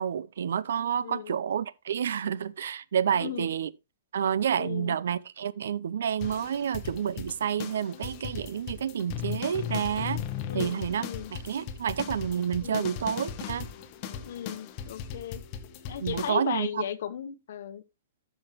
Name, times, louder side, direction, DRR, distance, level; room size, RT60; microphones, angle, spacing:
voice 1, 0.0-3.7 4.1-10.2 10.5-13.7 16.0-16.8, right 8 dB, 75° right, 0.5 m, -29 dB
voice 2, 1.0-1.4 3.1-3.5 4.5-5.0 10.5-11.3 12.6-12.9 14.2-15.4 15.9-17.8, left 10 dB, 55° left, 0.8 m, -36 dB
sound 1, 6.2-16.3, left 9 dB, 25° left, 0.8 m, -38 dB
12.5 x 6.1 x 2.9 m
hypercardioid pair, 175°, 0 cm